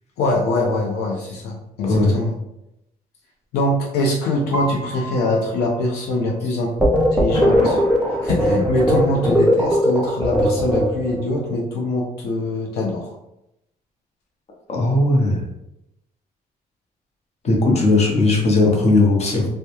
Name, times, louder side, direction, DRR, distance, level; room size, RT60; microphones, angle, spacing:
voice 1, 0.2-2.3 3.5-6.7 7.1-7.8 8.2-13.1, left 1 dB, 85° left, -2 dB, 0.5 m, -23 dB
Piano, 4.5-6.6, equal, 20° right, 0.9 m, -33 dB
sound 1, 6.8-11.2, equal, 5° right, 0.4 m, -18 dB
Thunder, 7.3-10.3, equal, 25° left, 1.1 m, -31 dB
voice 2, 14.7-15.4 17.4-19.5, left 2 dB, 40° left, -1 dB, 0.8 m, -17 dB
2.2 x 2.1 x 2.9 m, 0.85 s
cardioid pair, 90°, 16 cm